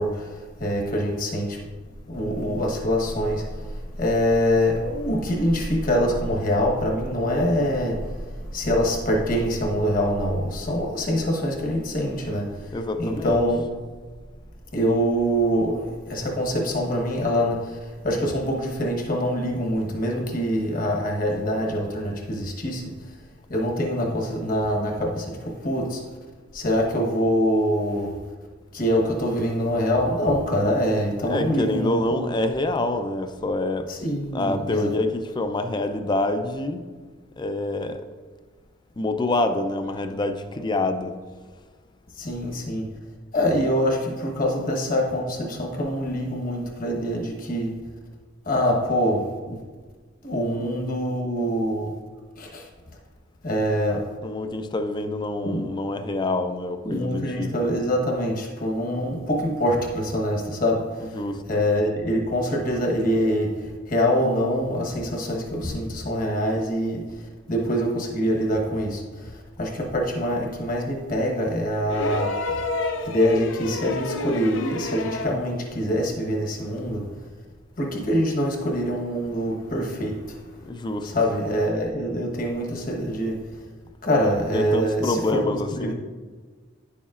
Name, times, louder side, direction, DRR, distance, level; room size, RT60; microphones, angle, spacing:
voice 1, 0.0-1.6 2.1-12.7 13.0-13.6 14.7-23.1 23.5-26.0 26.5-28.2 28.7-32.2 33.9-34.9 42.2-42.9 43.3-47.8 48.4-49.6 50.2-52.0 52.4-52.7 53.4-54.1 55.4-55.7 56.8-72.4 73.0-77.1 77.8-80.4 81.0-83.5 84.0-85.4 85.8-85.9, equal, 45° left, 0 dB, 1.2 m, -25 dB
voice 2, 12.7-13.5 31.2-33.9 34.3-36.8 37.4-38.1 39.0-41.2 54.2-57.5 61.1-61.4 80.7-81.1 84.5-85.9, left 2 dB, 25° left, 8 dB, 0.4 m, -26 dB
sound 1, 71.9-75.4 76.8-76.9, left 3 dB, 80° left, 0.6 m, -29 dB
10.0 x 7.0 x 2.5 m, 1.5 s
head